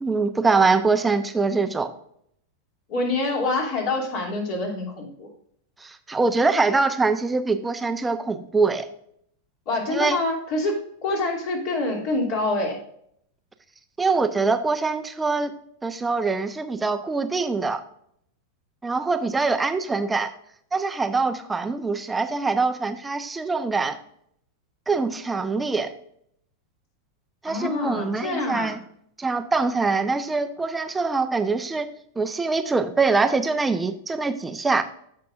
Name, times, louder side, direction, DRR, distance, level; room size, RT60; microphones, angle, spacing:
voice 1, 0.0-1.9 5.8-8.9 9.9-10.2 14.0-15.5 15.8-17.8 18.8-20.3 20.7-24.0 24.9-25.9 27.4-28.8 29.2-31.9 32.2-34.8, right 4 dB, 10° right, 9 dB, 0.8 m, -23 dB
voice 2, 2.9-5.3 9.7-12.8 27.4-28.8, left 2 dB, 45° left, -1 dB, 2.8 m, -26 dB
14.5 x 5.8 x 2.5 m, 0.69 s
figure-of-eight pair, 90°, 0 cm